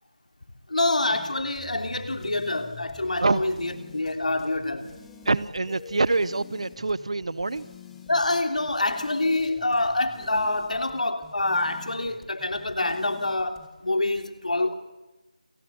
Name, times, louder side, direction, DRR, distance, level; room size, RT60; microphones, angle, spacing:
voice 1, 0.7-4.9 8.1-14.7, left 2 dB, 70° left, 7 dB, 3.1 m, -26 dB
sound 1, 1.1-13.7, left 3 dB, 5° left, 1.3 m, -47 dB
voice 2, 5.3-7.7, right 3 dB, 50° right, 20 dB, 0.8 m, -25 dB
29.0 x 16.0 x 8.6 m, 1.0 s
figure-of-eight pair, 170°, 4 cm